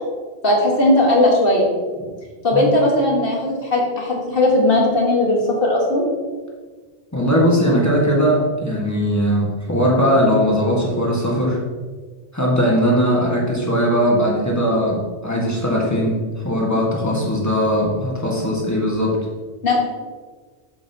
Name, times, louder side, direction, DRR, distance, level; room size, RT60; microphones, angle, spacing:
voice 1, 0.4-1.7 2.4-6.0 19.6-19.9, left 1 dB, 55° left, -2 dB, 1.8 m, -17 dB
voice 2, 7.1-11.6 12.3-19.3, equal, 15° left, -4 dB, 1.6 m, -19 dB
7.4 x 7.4 x 2.9 m, 1.4 s
omnidirectional pair, 1.1 m